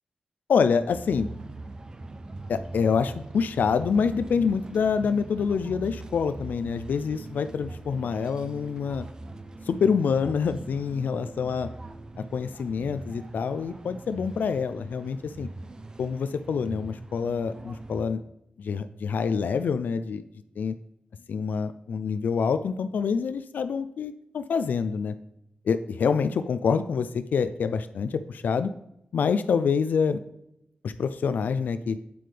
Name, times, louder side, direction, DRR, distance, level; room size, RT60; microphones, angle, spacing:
voice 1, 0.5-1.3 2.5-9.1 9.7-11.7 12.3-15.5 16.0-18.2 18.6-20.2 20.6-20.7 21.3-25.1 25.7-28.7 29.1-30.2 30.8-32.0, left 6 dB, 90° left, 11 dB, 0.4 m, -26 dB
sound 1, 0.9-18.1, right 2 dB, 25° right, 0.5 m, -41 dB
8.6 x 7.6 x 3.3 m, 0.81 s
wide cardioid pair, 145°, 3 cm